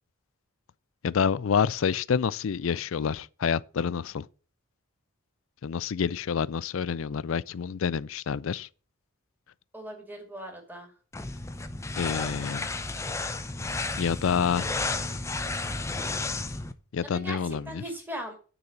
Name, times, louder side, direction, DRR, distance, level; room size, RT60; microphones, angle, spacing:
voice 1, 1.0-4.3 5.6-8.7 12.0-12.7 14.0-14.7 16.9-17.8, left 6 dB, 65° left, 0.4 m, -28 dB
voice 2, 9.7-10.9 17.0-18.3, right 1 dB, 10° right, 2.2 m, -39 dB
sound 1, 11.1-16.7, left 3 dB, 15° left, 0.5 m, -32 dB
9.6 x 4.1 x 7.0 m
head